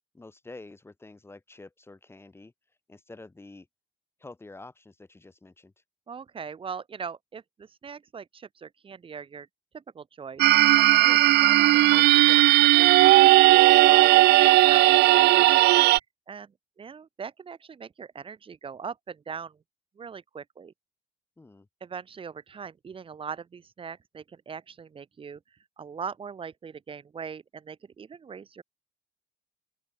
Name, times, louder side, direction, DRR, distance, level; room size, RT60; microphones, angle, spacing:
voice 1, 0.1-3.7 4.2-5.8 21.4-21.7, left 2 dB, 15° left, 3.8 m, -48 dB
voice 2, 6.1-9.5 9.7-13.5 13.7-15.1 15.3-16.5 16.8-19.6 20.0-20.7 21.8-28.6, right 6 dB, 30° right, 1.5 m, -41 dB
sound 1, 10.4-16.0, right 18 dB, 75° right, 0.5 m, -17 dB
open air
cardioid pair, 110°, 17 cm